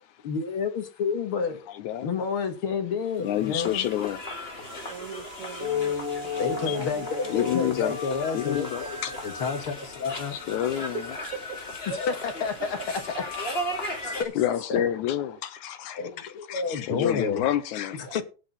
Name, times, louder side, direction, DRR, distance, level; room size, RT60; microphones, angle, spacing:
voice 1, 0.2-1.6 2.0-3.9 6.4-10.4 12.0-12.7 14.1-14.3 14.7-14.8 15.9-17.4 18.0-18.2, left 5 dB, 55° left, 1.7 m, -30 dB
voice 2, 1.7-2.1 3.2-4.2 6.7-6.8 7.3-8.0 8.3-9.1 10.3-11.0 14.4-18.2, left 11 dB, 75° left, 2.0 m, -28 dB
sound 1, 3.0-14.2, left 1 dB, 20° left, 1.9 m, -37 dB
voice 3, 4.6-7.5 10.6-12.0 12.6-12.7 13.0-13.3 18.1-18.2, right 5 dB, 55° right, 1.8 m, -40 dB
sound 2, 4.6-9.6, right 4 dB, 75° right, 6.1 m, -53 dB
sound 3, 5.6-10.5, left 7 dB, 35° left, 3.3 m, -34 dB
18.0 x 6.1 x 4.1 m
omnidirectional pair, 3.9 m